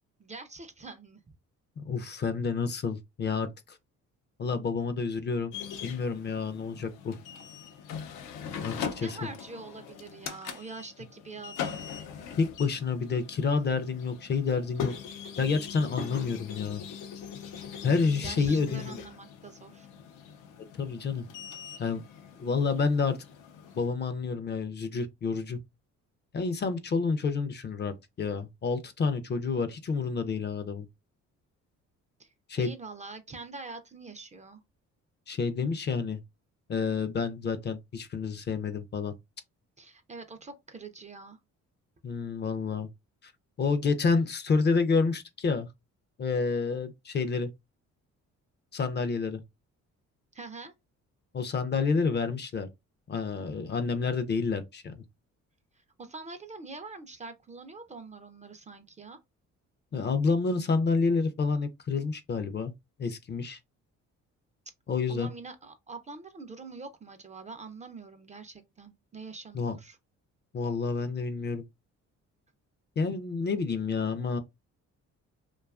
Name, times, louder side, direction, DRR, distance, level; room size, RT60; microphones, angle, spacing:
voice 1, 0.2-1.2 8.7-11.8 18.2-19.9 32.2-34.6 39.8-41.4 50.3-50.7 55.8-59.2 65.1-70.0, right 3 dB, 25° right, 0.4 m, -44 dB
voice 2, 1.8-3.8 4.4-5.5 5.8-7.1 8.6-9.2 12.4-14.9 15.4-16.8 17.8-19.0 20.8-21.3 21.8-22.0 22.4-23.2 23.8-25.6 26.3-30.9 32.5-32.7 35.3-36.2 36.7-39.1 42.0-42.9 43.2-43.3 43.6-45.7 46.2-47.5 48.7-49.4 51.3-52.7 53.1-55.0 59.9-62.7 63.0-63.6 64.9-65.3 69.5-69.8 70.5-71.6 73.0-74.4, left 4 dB, 35° left, 0.4 m, -29 dB
sound 1, 5.5-23.9, left 7 dB, 90° left, 0.5 m, -41 dB
2.6 x 2.3 x 2.3 m
cardioid pair, 90°, 30 cm